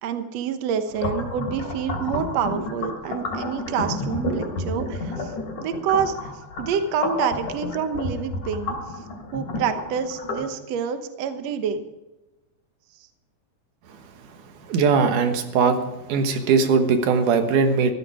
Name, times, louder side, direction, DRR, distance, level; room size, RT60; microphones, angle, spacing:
voice 1, 0.0-5.3 5.6-6.3 6.6-8.8 9.3-11.8, right 7 dB, 65° right, 8 dB, 2.1 m, -27 dB
sound 1, 0.9-10.5, left 2 dB, 85° left, 4.3 m, -31 dB
voice 2, 14.7-15.8 16.1-17.9, right 5 dB, 85° right, 6 dB, 2.8 m, -20 dB
15.0 x 12.5 x 4.9 m, 1.0 s
omnidirectional pair, 3.5 m